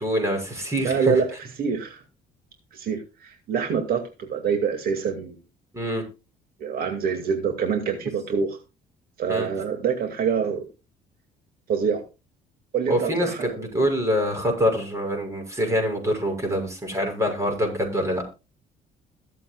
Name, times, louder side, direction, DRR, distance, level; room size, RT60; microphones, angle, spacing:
voice 1, 0.0-1.1 5.7-6.0 9.3-9.5 12.9-18.2, equal, 15° right, 3 dB, 6.6 m, -25 dB
voice 2, 0.8-2.0 2.7-5.4 6.6-8.6 9.2-10.6 11.7-12.0 12.7-13.6, right 6 dB, 60° right, 4 dB, 2.3 m, -26 dB
22.0 x 7.5 x 2.4 m, 0.30 s
cardioid pair, 110°, 17 cm